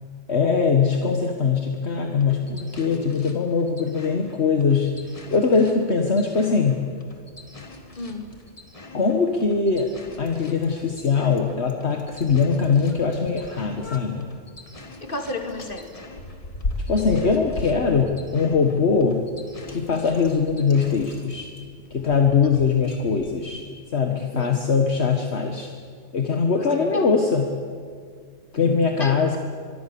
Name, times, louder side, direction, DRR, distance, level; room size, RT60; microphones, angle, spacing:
voice 1, 0.3-6.9 8.9-9.9 10.2-14.3 16.9-19.2 19.7-21.5 21.9-23.6 23.9-25.7 26.1-27.6 28.5-29.4, left 5 dB, 60° left, 4 dB, 1.7 m, -21 dB
sound 1, 2.2-21.3, left 2 dB, 30° left, 1.9 m, -47 dB
Bicycle, 7.3-23.4, left 2 dB, 90° left, 2.3 m, -39 dB
voice 2, 8.0-8.4 15.0-16.0 24.4-24.5 26.6-26.7 26.9-27.0 29.0-29.1, left 2 dB, 45° left, 5 dB, 2.5 m, -32 dB
24.5 x 22.5 x 7.0 m, 2.1 s
omnidirectional pair, 1.3 m